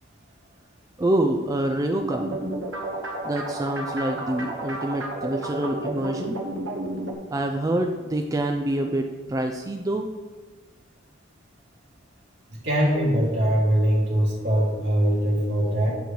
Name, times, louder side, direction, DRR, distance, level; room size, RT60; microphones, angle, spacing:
voice 1, 1.0-2.4 3.2-6.4 7.3-10.1, right 1 dB, 20° right, 4 dB, 0.3 m, -26 dB
sound 1, 2.0-7.1, right 1 dB, 85° right, 1.2 m, -31 dB
voice 2, 12.5-15.9, right 1 dB, 65° right, -6 dB, 2.6 m, -22 dB
9.1 x 6.8 x 3.0 m, 1.3 s
head